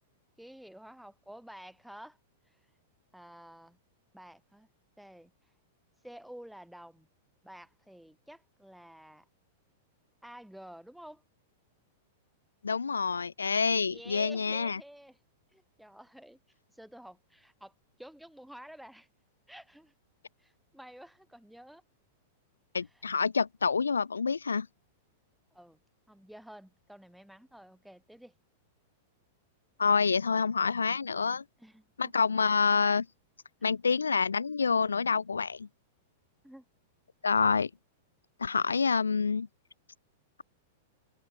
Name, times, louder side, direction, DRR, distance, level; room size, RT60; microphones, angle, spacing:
voice 1, 0.4-2.2 2.5-2.6 3.1-3.8 4.1-4.7 5.0-5.3 6.0-7.1 7.4-9.3 10.2-11.2 13.9-15.2 15.5-16.4 16.7-19.1 19.5-19.9 20.4-21.8 22.8-23.1 25.5-25.8 26.1-28.3 31.6-32.1 36.4-36.6, equal, ahead, 7.5 m, -50 dB
voice 2, 12.6-14.8 22.7-24.7 29.8-31.4 32.0-33.1 33.6-35.7 37.2-37.7 38.4-39.5, left 5 dB, 85° left, 1.1 m, -27 dB
hypercardioid pair, 100°, 0 cm